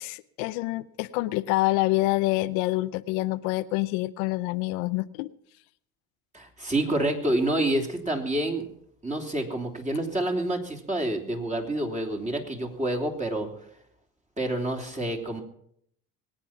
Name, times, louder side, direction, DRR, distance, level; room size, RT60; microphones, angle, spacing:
voice 1, 0.0-5.3, left 19 dB, 90° left, 13 dB, 0.7 m, -27 dB
voice 2, 6.3-8.7 9.0-13.5 14.4-15.4, right 1 dB, 15° right, 3 dB, 3.2 m, -28 dB
21.5 x 9.0 x 5.9 m, 0.70 s
supercardioid pair, 85°, 41 cm